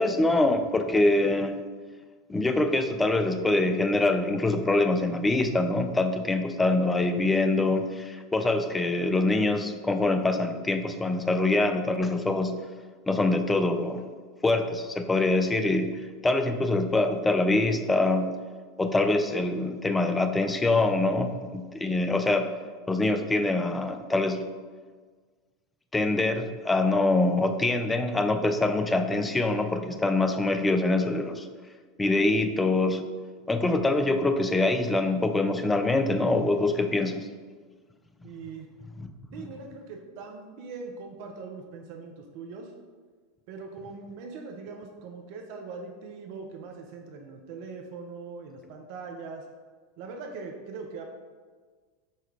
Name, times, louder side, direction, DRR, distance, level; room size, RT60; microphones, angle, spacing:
voice 1, 0.0-1.6 2.3-12.6 13.1-14.0 14.4-18.3 18.8-22.5 22.9-24.5 25.9-31.5 32.0-33.0 33.5-37.3, left 2 dB, 15° left, 7 dB, 0.3 m, -24 dB
voice 2, 38.2-38.7 39.3-42.7 43.5-49.5 50.0-51.0, right 4 dB, 60° right, 3 dB, 0.5 m, -41 dB
5.4 x 2.2 x 3.2 m, 1.5 s
hypercardioid pair, 85°, 0 cm